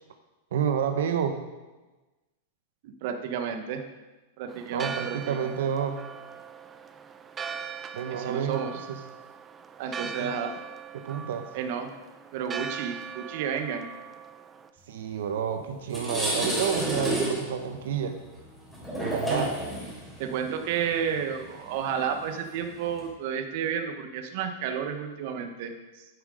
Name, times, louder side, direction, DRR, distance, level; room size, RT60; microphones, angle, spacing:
voice 1, 0.5-1.4 4.7-6.0 7.9-8.6 8.9-9.0 10.2-10.3 10.9-11.5 14.9-18.1 19.0-19.5, right 8 dB, 75° right, 6 dB, 0.9 m, -29 dB
voice 2, 2.8-3.8 4.4-5.5 8.1-8.8 9.8-10.6 11.5-11.9 12.3-13.9 19.3-19.5 20.2-26.1, right 7 dB, 55° right, 6 dB, 1.0 m, -31 dB
Church bell, 4.5-14.7, right 6 dB, 15° right, 0.5 m, -40 dB
sound 1, 15.3-15.4 15.8-23.1, equal, ahead, 3.2 m, -32 dB
10.5 x 7.6 x 4.9 m, 1.2 s
supercardioid pair, 150°, 0 cm